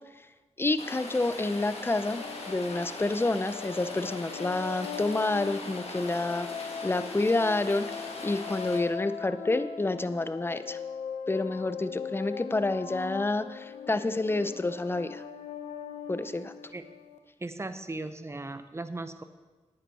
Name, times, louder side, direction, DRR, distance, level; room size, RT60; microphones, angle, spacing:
voice 1, 0.6-10.8 11.3-15.2 16.1-16.5, left 2 dB, 20° left, 12 dB, 0.6 m, -29 dB
Rain, 0.8-8.8, left 2 dB, 60° left, 1.9 m, -41 dB
sound 1, 1.7-17.2, left 7 dB, 90° left, 0.7 m, -40 dB
voice 2, 17.4-19.2, right 2 dB, 25° right, 11 dB, 0.7 m, -37 dB
10.0 x 9.2 x 4.2 m, 1.3 s
cardioid pair, 60°, 12 cm